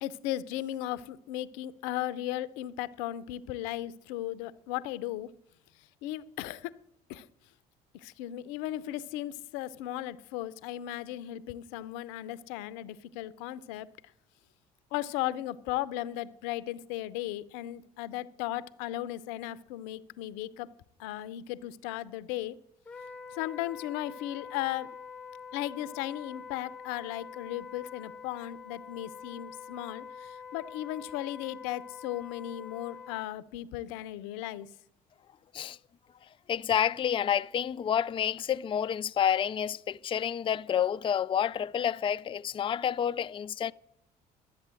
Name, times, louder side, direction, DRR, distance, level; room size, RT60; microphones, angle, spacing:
voice 1, 0.0-5.3 6.0-6.7 7.1-7.3 7.9-13.9 14.9-20.7 21.0-22.6 23.3-24.9 25.5-34.7, left 14 dB, 80° left, 0.6 m, -36 dB
Wind instrument woodwind instrument, 22.9-33.3, left 6 dB, 10° left, 1.0 m, -46 dB
voice 2, 36.5-43.7, left 9 dB, 30° left, 0.4 m, -29 dB
12.0 x 8.3 x 7.5 m
hypercardioid pair, 60°, 18 cm